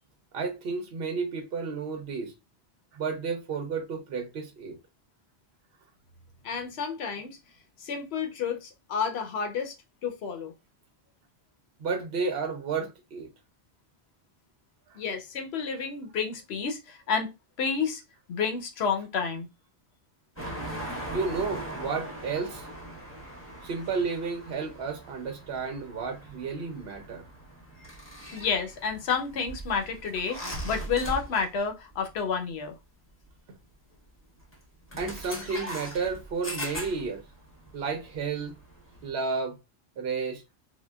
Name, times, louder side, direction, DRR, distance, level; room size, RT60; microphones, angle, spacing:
voice 1, 0.3-2.3 2.9-4.8 11.8-13.3 14.9-15.0 21.1-22.7 23.6-27.2 35.0-37.2 37.7-38.5 39.0-39.6 40.0-40.4, right 4 dB, 75° right, 0.9 m, -32 dB
voice 2, 6.4-7.4 7.8-9.7 10.0-10.5 15.0-17.3 17.6-18.0 18.3-19.5 28.3-32.7, left 6 dB, 90° left, 0.9 m, -30 dB
sound 1, 20.4-31.7 31.9-32.2 33.3-33.4 34.4-34.6 34.9-39.1, right 1 dB, 15° left, 0.8 m, -40 dB
3.7 x 2.1 x 2.2 m
omnidirectional pair, 1.0 m